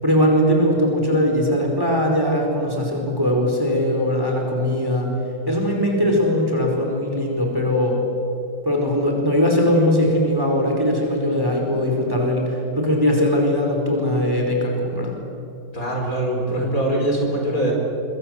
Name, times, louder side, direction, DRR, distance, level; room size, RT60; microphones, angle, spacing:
voice 1, 0.0-5.2 5.5-8.0 8.6-15.1, equal, 10° right, 0 dB, 4.9 m, -20 dB
voice 2, 15.7-17.7, right 1 dB, 50° left, 1 dB, 4.9 m, -22 dB
25.0 x 23.5 x 8.0 m, 2.6 s
omnidirectional pair, 1.8 m